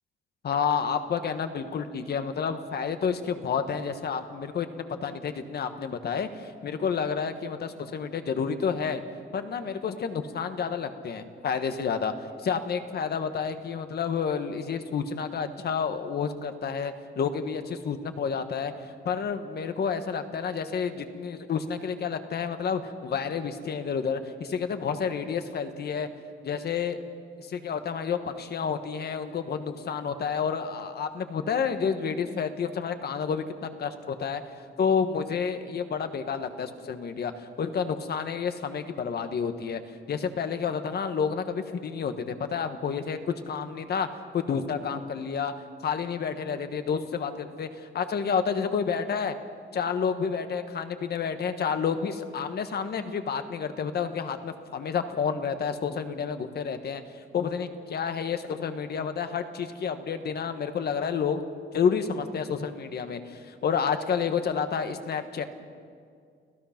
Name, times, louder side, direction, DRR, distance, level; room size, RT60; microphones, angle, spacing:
voice 1, 0.4-9.0 9.3-12.1 12.4-18.7 19.0-26.1 26.4-27.0 27.4-34.4 34.8-39.8 40.1-44.1 44.3-45.5 45.8-49.3 49.7-57.0 57.3-61.4 61.7-65.4, left 6 dB, 50° left, 8 dB, 1.4 m, -30 dB
30.0 x 17.0 x 5.9 m, 2.2 s
cardioid pair, 150°, 21 cm